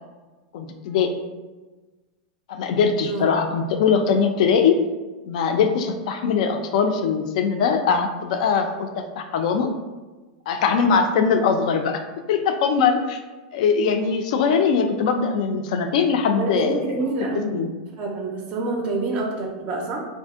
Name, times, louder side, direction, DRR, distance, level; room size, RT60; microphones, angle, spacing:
voice 1, 0.5-1.1 2.5-4.8 5.3-9.7 10.5-12.0 12.3-13.2 13.5-16.9 17.5-17.7, left 6 dB, 60° left, 6 dB, 0.4 m, -21 dB
voice 2, 16.4-17.6 18.0-20.1, right 3 dB, 30° right, 1 dB, 0.4 m, -27 dB
2.6 x 2.1 x 3.5 m, 1.2 s
supercardioid pair, 150°, 4 cm